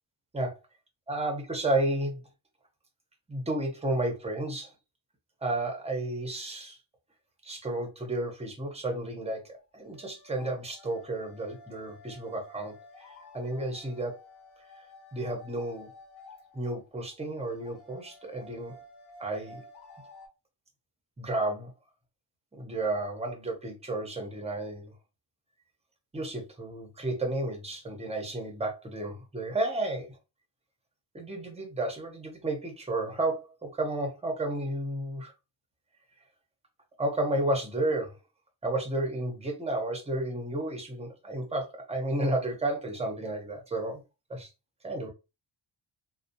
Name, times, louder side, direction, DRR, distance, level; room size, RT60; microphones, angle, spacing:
voice 1, 1.1-2.2 3.3-4.7 5.4-6.8 7.4-14.2 14.7-14.8 15.1-15.9 16.5-18.8 19.2-19.6 21.2-21.7 22.5-24.9 26.1-30.2 31.1-35.3 37.0-38.2 38.6-44.0 44.3-44.5 44.8-45.1, right 2 dB, 15° right, 0.6 m, -32 dB
sound 1, 9.3-20.3, left 2 dB, 60° left, 0.9 m, -53 dB
2.6 x 2.1 x 2.5 m
wide cardioid pair, 175°, 47 cm